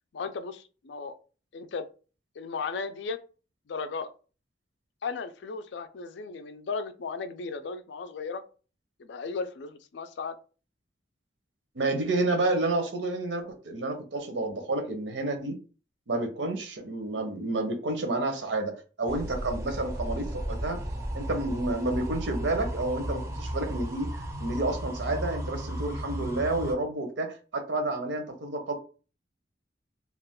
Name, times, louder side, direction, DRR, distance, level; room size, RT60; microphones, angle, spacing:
voice 1, 0.1-1.1 1.5-1.9 2.4-3.2 3.7-4.1 5.0-8.4 9.0-10.3, left 4 dB, 75° left, 10 dB, 0.4 m, -35 dB
voice 2, 11.8-15.5 16.1-20.8 21.1-24.1 24.4-28.7, right 2 dB, 85° right, 6 dB, 0.7 m, -30 dB
sound 1, 19.1-26.7, equal, 15° right, 0.4 m, -34 dB
2.4 x 2.3 x 3.5 m, 0.36 s
head